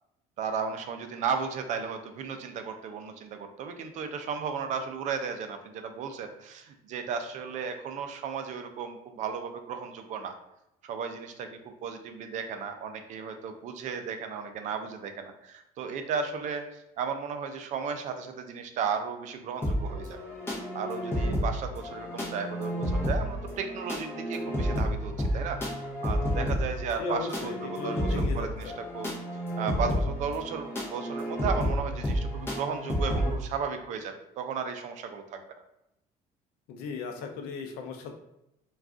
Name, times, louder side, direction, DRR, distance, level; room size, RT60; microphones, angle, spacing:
voice 1, 0.4-10.3 10.8-11.5 11.8-20.2 20.7-29.1 29.6-35.4, right 6 dB, 50° right, 6 dB, 0.4 m, -35 dB
sound 1, 19.6-33.3, equal, 15° left, 0.7 m, -31 dB
voice 2, 27.0-28.7 36.7-38.2, left 4 dB, 85° left, 4 dB, 0.5 m, -36 dB
2.4 x 2.3 x 3.5 m, 0.86 s
cardioid pair, 150°, 16 cm